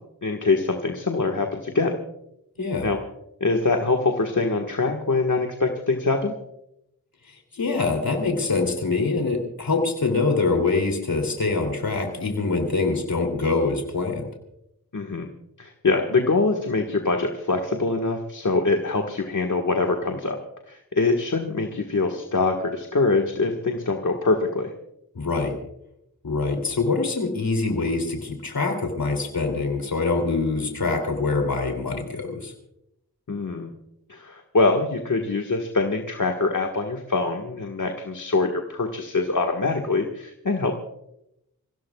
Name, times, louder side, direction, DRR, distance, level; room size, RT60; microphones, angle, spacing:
voice 1, 0.2-1.9 2.8-3.0 3.4-6.3 14.9-15.3 15.6-20.4 20.7-24.7 33.3-33.7 34.1-40.7, left 3 dB, 55° left, 3 dB, 1.7 m, -24 dB
voice 2, 2.6-2.9 7.5-14.3 25.1-25.5 26.2-32.5, left 3 dB, 70° left, 3 dB, 3.0 m, -24 dB
28.0 x 16.5 x 2.4 m, 0.81 s
cardioid pair, 50°, 36 cm